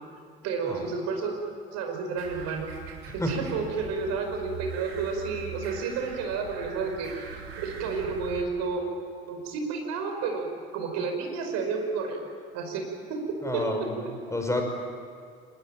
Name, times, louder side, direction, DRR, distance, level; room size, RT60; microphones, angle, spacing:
voice 1, 0.4-1.3 1.7-2.7 3.1-7.1 7.6-8.8 9.3-12.2 12.5-13.9, right 4 dB, 55° right, 4 dB, 5.2 m, -31 dB
sound 1, 2.2-8.5, right 6 dB, 75° right, 2.9 m, -42 dB
voice 2, 13.4-14.6, left 1 dB, 10° left, 3 dB, 5.4 m, -30 dB
25.5 x 21.0 x 9.1 m, 2.2 s
figure-of-eight pair, 60°, 31 cm